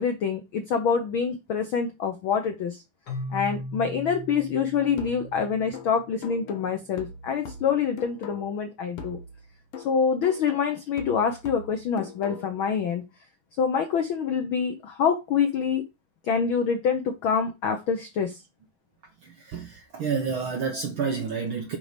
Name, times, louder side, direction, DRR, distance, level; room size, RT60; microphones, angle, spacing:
voice 1, 0.0-2.8 3.3-9.2 9.8-13.1 13.6-15.8 16.2-18.4, left 6 dB, 85° left, 1.1 m, -26 dB
Keyboard (musical), 3.1-6.8, left 1 dB, 35° left, 2.4 m, -39 dB
sound 1, 5.0-8.7 9.0-12.7, left 4 dB, 60° left, 1.8 m, -42 dB
voice 2, 19.2-21.8, right 5 dB, 70° right, 1.2 m, -29 dB
9.6 x 4.0 x 5.1 m
omnidirectional pair, 3.6 m